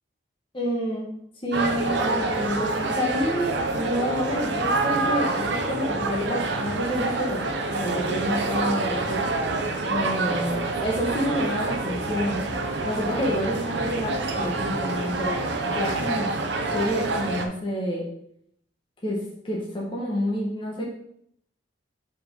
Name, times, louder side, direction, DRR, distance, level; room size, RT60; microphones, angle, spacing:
voice 1, 0.5-1.1 1.4-7.4 7.7-9.3 9.9-12.5 12.8-16.3 16.7-18.1 19.0-20.8, equal, 25° left, -4 dB, 1.2 m, -28 dB
sound 1, 1.5-17.5, right 2 dB, 65° right, 0.8 m, -27 dB
5.3 x 4.5 x 5.2 m, 0.72 s
head